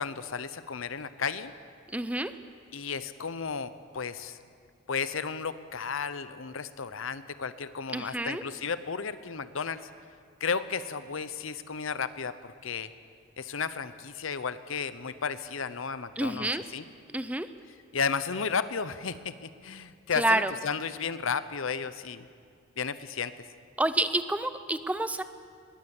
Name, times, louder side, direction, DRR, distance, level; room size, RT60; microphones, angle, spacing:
voice 1, 0.0-1.5 2.7-4.4 4.9-9.9 10.4-12.9 13.4-16.8 17.9-22.3 22.8-23.5, left 5 dB, 70° left, 14 dB, 0.8 m, -33 dB
voice 2, 1.9-2.3 7.9-8.4 16.2-16.6 17.1-17.5 20.2-20.5 23.8-25.2, right 1 dB, 5° right, 11 dB, 0.5 m, -28 dB
21.0 x 17.5 x 7.2 m, 2.2 s
head